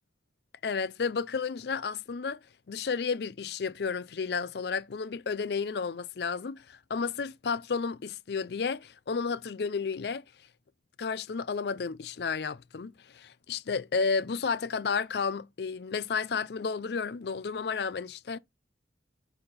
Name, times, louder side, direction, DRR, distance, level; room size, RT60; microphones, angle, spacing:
voice 1, 0.6-2.4 2.7-10.2 11.0-18.4, left 5 dB, 65° left, 0.4 m, -32 dB
7.7 x 4.2 x 4.1 m
head